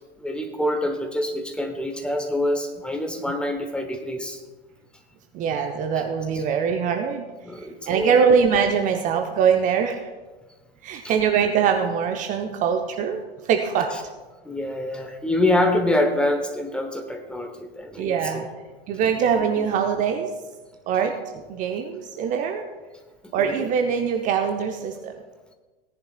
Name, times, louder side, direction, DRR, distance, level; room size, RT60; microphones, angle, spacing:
voice 1, 0.2-4.4 7.4-8.3 14.4-18.4 19.5-19.7 23.4-23.7, left 1 dB, 5° left, 4 dB, 0.9 m, -26 dB
voice 2, 5.3-7.2 7.9-10.0 10.8-13.9 18.0-18.5 18.9-20.3 20.9-21.2 21.5-22.7 23.3-25.1, right 7 dB, 25° right, 5 dB, 0.7 m, -22 dB
17.0 x 10.5 x 2.3 m, 1.2 s
figure-of-eight pair, 95°, 30 cm